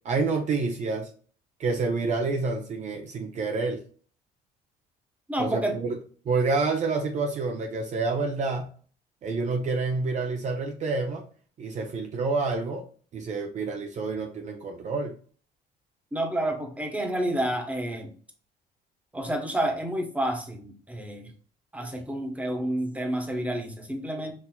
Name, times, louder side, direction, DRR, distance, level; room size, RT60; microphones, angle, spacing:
voice 1, 0.0-1.1 1.6-3.8 5.4-6.0 6.2-8.7 9.2-11.2 11.6-12.9 13.1-15.1, right 3 dB, 45° right, 4 dB, 0.7 m, -28 dB
voice 2, 5.3-5.8 16.1-18.1 19.1-21.3 21.7-24.3, right 1 dB, 10° right, 3 dB, 1.0 m, -29 dB
6.0 x 2.8 x 2.3 m, 0.43 s
cardioid pair, 110°, 17 cm